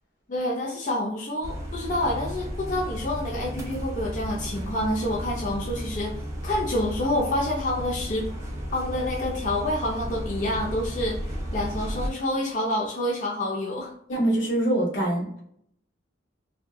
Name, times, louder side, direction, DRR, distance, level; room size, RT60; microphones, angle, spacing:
voice 1, 0.3-6.1 6.4-8.3 8.7-13.9, left 1 dB, 40° left, -3 dB, 0.4 m, -28 dB
sound 1, 1.4-12.1, equal, 15° right, 0.5 m, -33 dB
voice 2, 14.1-15.4, right 1 dB, 85° left, -3 dB, 1.2 m, -24 dB
2.7 x 2.1 x 2.2 m, 0.70 s
head